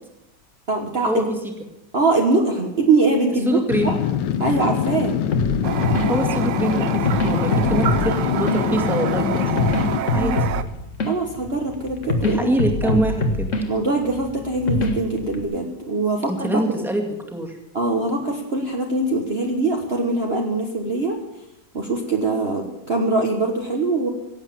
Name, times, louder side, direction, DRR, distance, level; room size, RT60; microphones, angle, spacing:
voice 1, 0.7-1.2 1.9-4.0 4.4-5.1 10.1-10.4 11.1-12.5 12.8-13.0 13.7-16.6 17.7-21.2 21.7-24.1, right 3 dB, 35° right, 1 dB, 1.5 m, -22 dB
voice 2, 3.5-4.0 6.1-9.6 10.1-10.4 12.2-13.5 16.3-17.6 18.0-18.1, right 1 dB, ahead, 3 dB, 2.0 m, -24 dB
sound 1, 3.7-10.0, left 9 dB, 85° left, 1.5 m, -23 dB
sound 2, 5.3-15.4, left 2 dB, 45° left, 1.8 m, -26 dB
Toilet flush, 5.6-10.6, right 9 dB, 90° right, 1.5 m, -27 dB
17.0 x 8.2 x 8.8 m, 0.90 s
omnidirectional pair, 1.9 m